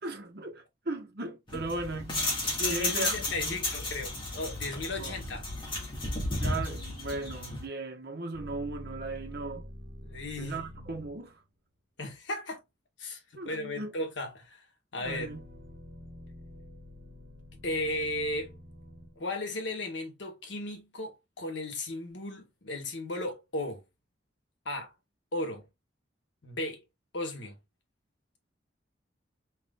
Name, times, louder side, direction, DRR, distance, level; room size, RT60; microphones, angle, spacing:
voice 1, 0.0-2.3 2.7-3.6 5.0-5.2 6.1-9.7 10.4-11.4 13.3-13.9 15.0-15.4, right 2 dB, 55° right, 1.2 m, -37 dB
sound 1, 1.5-7.6, left 2 dB, 25° left, 1.8 m, -33 dB
voice 2, 2.6-5.4 10.0-10.6 12.0-12.6 13.0-14.6 14.9-15.3 17.6-18.6 19.2-23.8 24.6-24.9 25.3-25.7 26.4-26.8 27.1-27.6, left 2 dB, 70° left, 1.4 m, -35 dB
sound 2, 8.3-11.5 15.0-19.6, equal, 80° right, 1.3 m, -47 dB
5.0 x 3.3 x 2.3 m
head